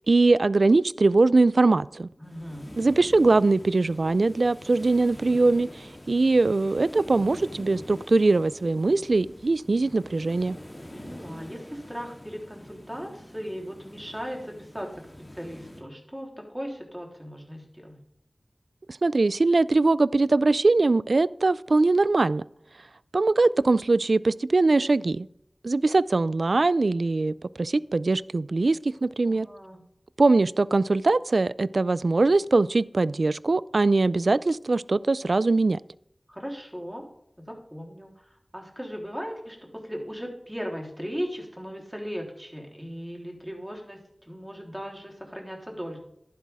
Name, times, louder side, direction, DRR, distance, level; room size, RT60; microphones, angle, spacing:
voice 1, 0.1-2.1 2.8-10.6 19.0-22.4 23.1-25.3 25.6-29.5 30.2-35.8, right 3 dB, 80° right, 19 dB, 0.3 m, -22 dB
sound 1, 2.2-15.8, left 1 dB, 25° left, 3.1 m, -45 dB
voice 2, 2.2-2.7 10.9-18.0 29.2-29.8 36.3-37.0 37.4-46.0, equal, 10° right, 1 dB, 3.5 m, -37 dB
11.5 x 10.0 x 3.6 m, 0.75 s
wide cardioid pair, 40°, 0 cm